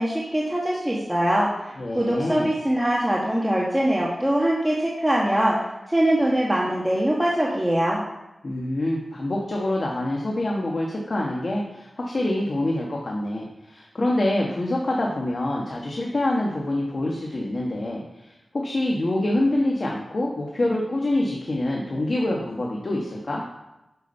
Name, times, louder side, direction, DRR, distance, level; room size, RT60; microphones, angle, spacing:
voice 1, 0.0-5.6 5.9-8.0, right 1 dB, 10° right, -5 dB, 1.5 m, -22 dB
voice 2, 1.8-2.5 8.4-23.4, left 1 dB, 50° left, -2 dB, 1.5 m, -26 dB
8.3 x 6.3 x 5.5 m, 0.96 s
wide cardioid pair, 90°, 0 cm